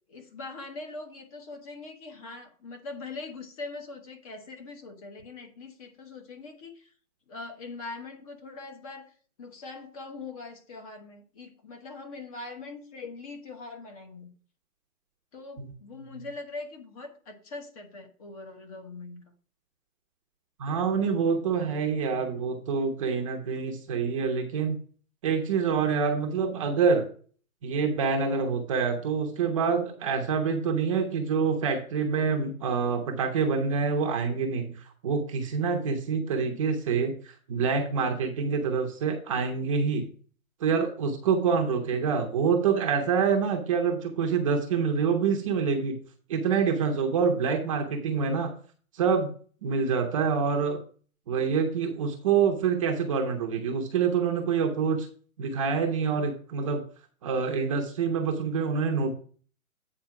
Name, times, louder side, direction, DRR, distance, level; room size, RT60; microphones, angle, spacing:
voice 1, 0.1-6.9 7.3-9.1 9.4-14.3 15.3-19.2 36.4-36.6 41.9-42.3, left 3 dB, 25° left, 5 dB, 1.0 m, -42 dB
voice 2, 20.6-24.8 25.2-27.1 27.6-40.1 40.6-46.0 46.3-48.5 48.9-49.3 49.6-50.8 51.3-55.1 55.4-56.8 57.2-59.1, right 5 dB, 25° right, 3 dB, 0.8 m, -26 dB
8.8 x 4.3 x 5.8 m, 0.44 s
hypercardioid pair, 155°, 43 cm